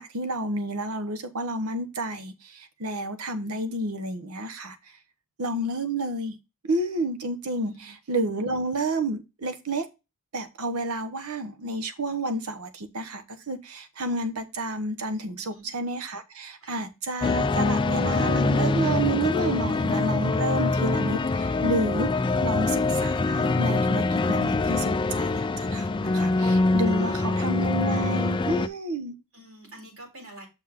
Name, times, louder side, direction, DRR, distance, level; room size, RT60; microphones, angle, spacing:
voice 1, 0.0-4.8 5.4-6.4 6.6-9.9 10.3-29.1, right 1 dB, 85° right, 1.1 m, -30 dB
voice 2, 7.6-7.9 15.3-15.7 16.6-16.8 26.9-27.1 29.1-30.5, right 1 dB, 65° right, 4.2 m, -47 dB
sound 1, 17.2-28.7, left 3 dB, 20° left, 0.3 m, -24 dB
6.4 x 5.6 x 3.6 m
head